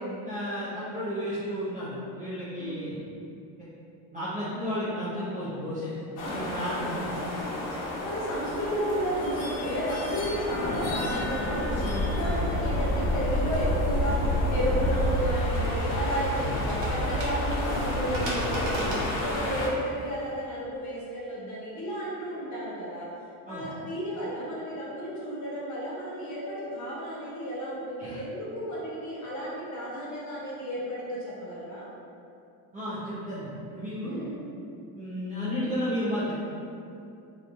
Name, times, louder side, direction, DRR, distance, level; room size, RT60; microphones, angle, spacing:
voice 1, 0.2-2.9 4.1-5.9 6.2-7.1 23.5-23.7 28.0-28.2 32.7-34.2 34.9-36.3, equal, 20° right, -12 dB, 0.3 m, -32 dB
voice 2, 2.6-3.0 6.2-6.4 6.7-6.9 8.0-18.9 19.2-23.1 23.5-31.8 34.0-34.4, equal, 40° left, -6 dB, 0.8 m, -33 dB
sound 1, 6.2-19.7, left 1 dB, 80° left, 0.8 m, -29 dB
sound 2, 15.2-20.3, right 1 dB, 85° right, 0.9 m, -37 dB
3.0 x 2.2 x 2.5 m, 2.6 s
cardioid pair, 140°, 45 cm